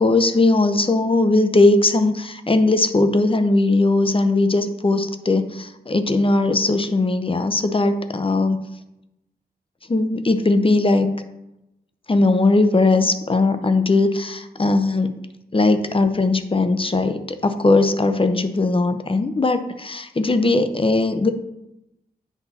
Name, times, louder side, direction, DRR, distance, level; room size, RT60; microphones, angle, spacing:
voice 1, 0.0-8.6 9.9-11.1 12.1-15.2 15.5-21.3, left 2 dB, 35° left, 9 dB, 0.7 m, -19 dB
8.2 x 5.5 x 4.2 m, 0.89 s
wide cardioid pair, 70°, 16 cm